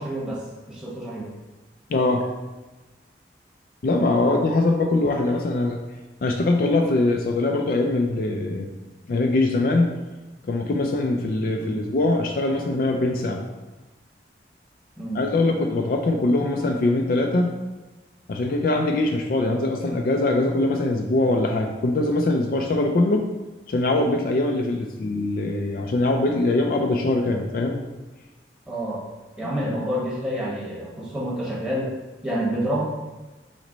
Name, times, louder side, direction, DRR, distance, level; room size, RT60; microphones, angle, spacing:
voice 1, 0.0-1.3 4.2-4.6 11.6-11.8 15.0-15.2 28.7-29.0 29.4-31.9 32.2-32.8, right 1 dB, 5° right, -6 dB, 1.0 m, -28 dB
voice 2, 1.9-2.2 3.8-5.8 6.2-8.7 9.1-9.9 10.5-13.4 15.1-17.6 18.3-23.2 23.7-27.8 29.7-29.8, left 2 dB, 50° left, 2 dB, 0.3 m, -22 dB
6.0 x 2.1 x 3.9 m, 1.2 s
head